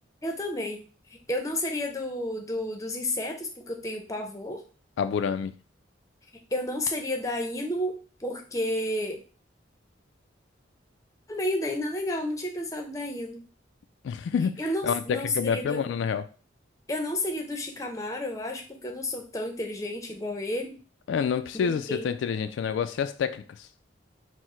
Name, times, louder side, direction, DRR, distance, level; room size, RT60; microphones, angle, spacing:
voice 1, 0.2-0.8 1.3-4.6 6.5-7.9 8.2-9.2 11.3-13.4 14.6-15.9 16.9-20.8 21.6-22.1, left 1 dB, 15° left, 0.6 m, -31 dB
voice 2, 5.0-5.5 14.0-14.6 14.8-16.3 21.1-23.7, left 7 dB, 80° left, 0.3 m, -28 dB
4.6 x 2.1 x 4.3 m
head